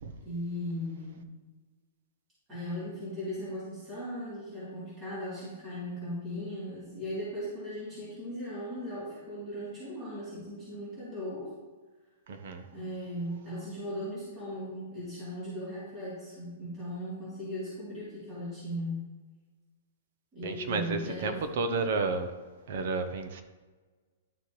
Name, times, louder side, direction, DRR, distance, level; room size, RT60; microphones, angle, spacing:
voice 1, 0.2-1.2 2.5-11.5 12.7-19.1 20.3-21.9, equal, 10° right, -11 dB, 2.9 m, -38 dB
voice 2, 12.3-12.6 20.4-22.3 22.7-23.4, right 4 dB, 45° right, 8 dB, 0.8 m, -31 dB
11.5 x 6.7 x 3.1 m, 1.3 s
hypercardioid pair, 175°, 0 cm